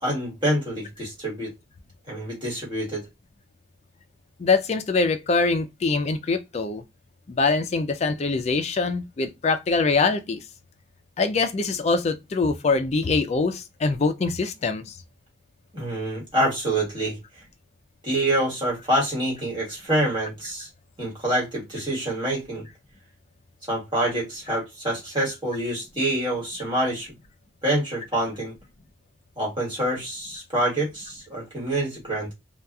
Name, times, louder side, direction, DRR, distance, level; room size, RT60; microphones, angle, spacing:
voice 1, 0.0-1.5 2.1-3.1 15.7-17.2 18.0-20.7 21.0-22.6 23.7-27.1 27.6-28.5 29.4-32.3, right 1 dB, 25° right, 1.4 m, -26 dB
voice 2, 4.4-6.8 7.3-10.4 11.2-15.0, left 4 dB, 35° left, 0.3 m, -23 dB
2.7 x 2.3 x 2.3 m
head